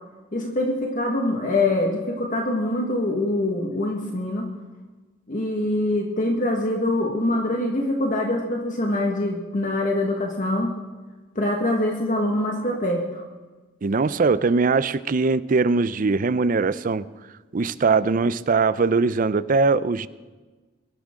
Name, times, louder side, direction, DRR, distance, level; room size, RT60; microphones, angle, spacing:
voice 1, 0.3-4.5 5.3-10.7 11.3-13.2, left 1 dB, 45° left, 0 dB, 1.6 m, -24 dB
voice 2, 13.8-17.1 17.5-20.1, right 4 dB, 45° right, 16 dB, 0.5 m, -21 dB
22.5 x 12.0 x 3.7 m, 1.3 s
head